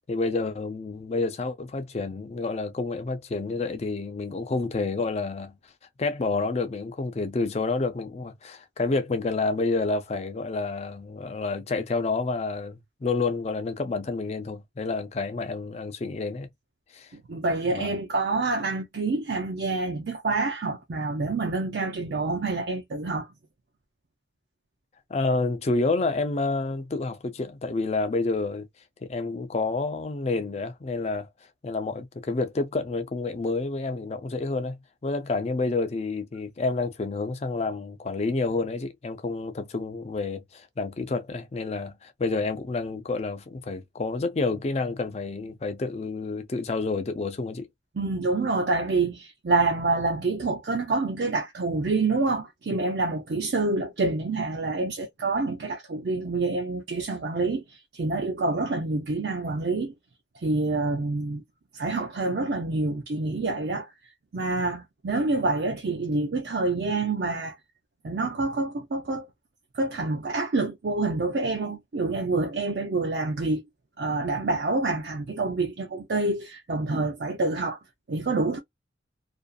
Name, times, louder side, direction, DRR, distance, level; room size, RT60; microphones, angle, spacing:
voice 1, 0.1-5.5 6.0-16.5 16.9-17.1 17.6-17.9 25.1-28.7 29.0-31.3 31.6-47.7, left 3 dB, 35° left, 0.4 m, -29 dB
voice 2, 17.1-23.3 48.0-59.9 60.4-61.4 61.7-63.9 64.3-67.5 68.0-69.3 69.7-73.6 74.0-77.8 78.1-78.6, right 3 dB, 60° right, 0.5 m, -27 dB
2.5 x 2.4 x 2.2 m
head